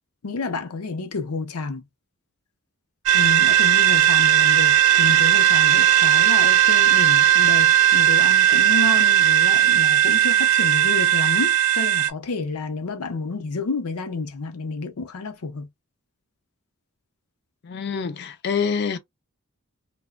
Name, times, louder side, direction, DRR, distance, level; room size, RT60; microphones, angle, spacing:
voice 1, 0.2-1.8 3.1-15.7, left 3 dB, 80° left, 0.7 m, -30 dB
sound 1, 3.1-12.1, right 12 dB, 70° right, 0.5 m, -17 dB
voice 2, 17.6-19.0, left 6 dB, 50° left, 0.4 m, -26 dB
2.9 x 2.2 x 2.3 m
head